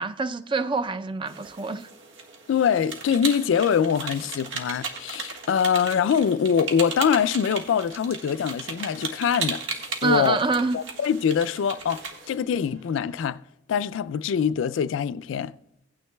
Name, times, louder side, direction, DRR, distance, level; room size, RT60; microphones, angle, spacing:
voice 1, 0.0-1.9 10.0-10.8, right 3 dB, 25° right, 0.4 m, -26 dB
sound 1, 1.3-12.4, right 5 dB, 90° right, 1.5 m, -36 dB
voice 2, 2.5-9.6 10.0-10.4 10.7-13.4 13.7-15.5, left 7 dB, 85° left, 0.3 m, -24 dB
sound 2, 7.2-13.3, right 3 dB, 65° right, 3.5 m, -57 dB
16.5 x 9.4 x 2.2 m
head